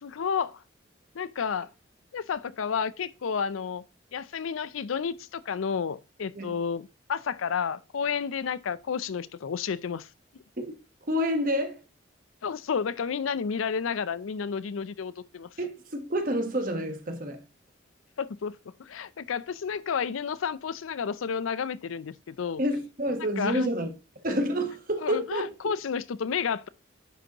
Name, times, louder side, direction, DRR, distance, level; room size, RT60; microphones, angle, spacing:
voice 1, 0.0-0.6 1.1-1.7 2.1-3.8 4.1-10.1 12.4-15.6 18.2-22.6 23.4-23.7 25.0-26.7, left 6 dB, 90° left, 0.5 m, -31 dB
voice 2, 11.0-11.8 15.6-17.4 22.6-23.9 24.2-25.7, equal, 45° right, 1.2 m, -29 dB
9.9 x 5.2 x 2.9 m
head